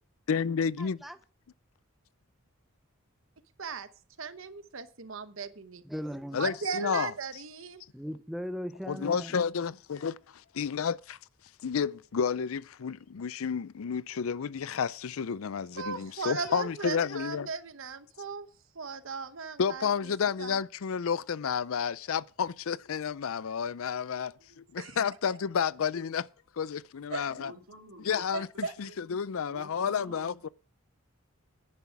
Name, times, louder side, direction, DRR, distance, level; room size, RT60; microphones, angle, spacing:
voice 1, 0.3-1.0 6.3-7.1 8.9-11.2 11.6-17.5 19.6-26.3 26.6-27.5 28.0-28.5 28.8-30.5, left 6 dB, 75° left, 0.5 m, -31 dB
voice 2, 0.8-1.2 5.8-6.5 7.9-9.4, equal, ahead, 0.5 m, -38 dB
voice 3, 4.2-5.8 6.3-7.8 15.8-18.5 18.7-20.6 24.8-25.0 27.1-27.2 28.3-28.7, right 5 dB, 65° right, 1.0 m, -37 dB
voice 4, 24.4-24.9 27.1-28.9 29.4-30.4, right 2 dB, 85° right, 2.5 m, -51 dB
11.0 x 9.9 x 4.7 m
head